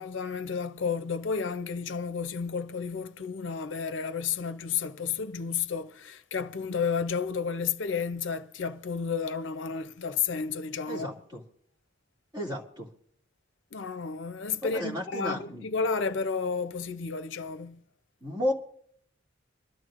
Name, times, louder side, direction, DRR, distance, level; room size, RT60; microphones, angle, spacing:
voice 1, 0.0-11.1 13.7-17.8, left 5 dB, 75° left, 0.6 m, -32 dB
voice 2, 10.9-11.4 12.3-12.9 14.6-15.7 18.2-18.5, left 1 dB, 25° right, 2.4 m, -33 dB
26.5 x 12.5 x 2.5 m
head